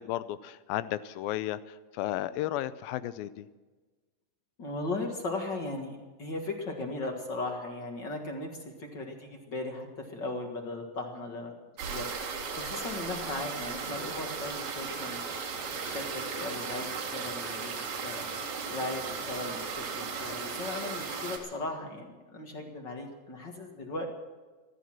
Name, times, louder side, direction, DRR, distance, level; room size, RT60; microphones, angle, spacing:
voice 1, 0.0-3.5, left 13 dB, 90° left, 14 dB, 2.4 m, -34 dB
voice 2, 4.6-8.5 8.8-11.5 11.9-24.1, left 2 dB, 45° left, 3 dB, 1.7 m, -37 dB
sound 1, 11.8-21.4, right 5 dB, 85° right, 3.9 m, -36 dB
15.0 x 14.0 x 6.1 m, 1.3 s
omnidirectional pair, 4.1 m